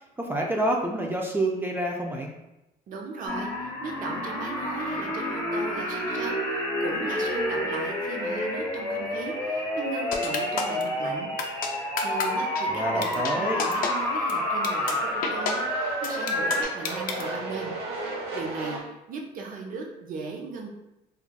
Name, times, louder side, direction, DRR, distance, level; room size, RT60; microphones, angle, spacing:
voice 1, 0.0-2.3 12.7-13.6, right 1 dB, 10° right, -1 dB, 0.3 m, -28 dB
voice 2, 2.9-11.3 11.6-17.7 18.3-20.7, right 4 dB, 55° right, 1 dB, 0.6 m, -37 dB
sound 1, 3.3-16.6, left 1 dB, 25° left, 1.1 m, -29 dB
sound 2, 6.8-18.8, right 2 dB, 85° right, 0.8 m, -39 dB
sound 3, 10.1-10.8 11.4-11.7 12.0-12.3 12.6-12.7 13.0-13.3 13.6-13.9 14.3-14.4 14.6-14.9 15.2-15.5 16.0-17.2, left 6 dB, 55° left, 0.4 m, -29 dB
3.2 x 2.4 x 2.2 m, 0.92 s
cardioid pair, 110°, 17 cm